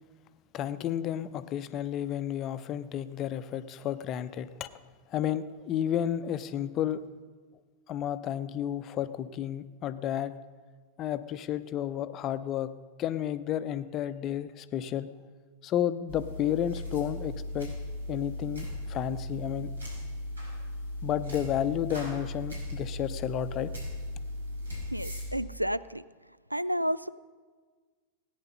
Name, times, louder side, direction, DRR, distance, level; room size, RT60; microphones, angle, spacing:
voice 1, 0.5-4.7 5.1-7.0 7.9-10.3 11.0-12.7 13.0-15.1 15.6-17.7 18.1-19.7 21.0-23.7, left 10 dB, 35° left, 13 dB, 0.6 m, -32 dB
sound 1, 16.1-25.3, left 1 dB, 75° right, 4.9 m, -37 dB
voice 2, 24.9-26.0 26.5-27.1, equal, 90° right, 17 dB, 0.3 m, -31 dB
17.5 x 9.8 x 5.5 m, 1.5 s
figure-of-eight pair, 90°, 0 cm